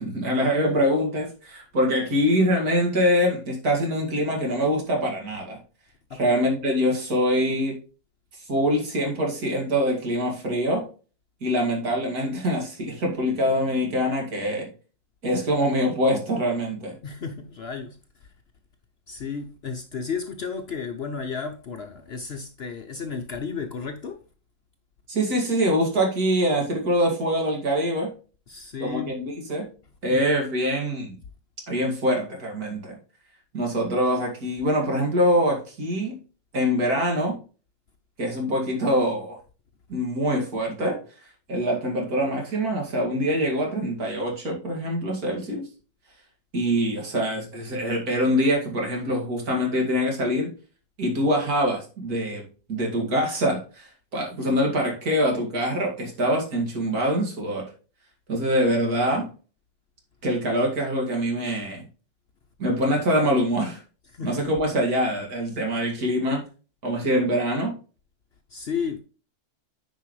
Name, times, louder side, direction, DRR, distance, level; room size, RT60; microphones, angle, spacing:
voice 1, 0.0-5.6 6.2-7.8 8.5-10.9 11.4-14.7 15.2-16.9 25.1-28.1 28.8-29.2 29.5-29.7 30.0-31.2 31.7-33.0 33.5-36.2 36.5-37.4 38.2-39.4 39.9-41.0 41.5-45.7 46.5-50.5 51.0-52.4 52.7-57.6 58.3-59.3 60.2-61.8 62.6-63.8 64.2-66.4 66.8-67.7, equal, 75° right, 2.8 m, -24 dB
voice 2, 17.0-18.3 19.1-24.2 28.5-29.2 30.1-30.2 64.1-64.5 68.5-69.0, left 5 dB, 55° left, 0.8 m, -33 dB
9.6 x 5.2 x 3.2 m
omnidirectional pair, 1.6 m